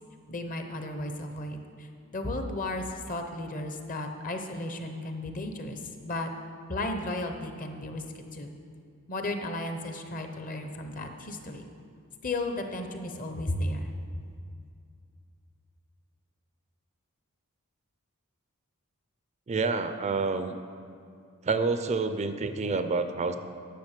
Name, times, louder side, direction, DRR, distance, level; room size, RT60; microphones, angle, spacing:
voice 1, 0.3-1.9 2.1-6.3 6.7-8.0 8.3-8.5 9.1-11.7 12.2-13.9, left 1 dB, 40° left, 6 dB, 0.8 m, -34 dB
voice 2, 19.5-20.6 21.4-23.4, right 4 dB, 30° right, 9 dB, 0.4 m, -28 dB
10.5 x 6.9 x 6.6 m, 2.4 s
head